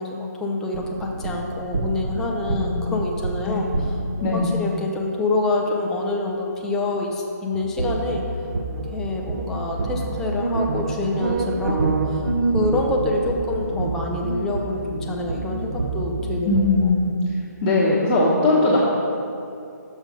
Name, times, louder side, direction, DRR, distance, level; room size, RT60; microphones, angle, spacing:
voice 1, 0.0-4.0 4.3-8.2 8.8-17.0, left 2 dB, 5° left, -1 dB, 0.4 m, -26 dB
sound 1, 0.7-4.4 7.5-16.7, right 2 dB, 55° right, 0.8 m, -27 dB
voice 2, 4.2-4.6 16.4-17.1 17.6-18.8, left 2 dB, 20° left, -10 dB, 1.0 m, -19 dB
6.3 x 6.2 x 5.2 m, 2.5 s
hypercardioid pair, 155°, 10 cm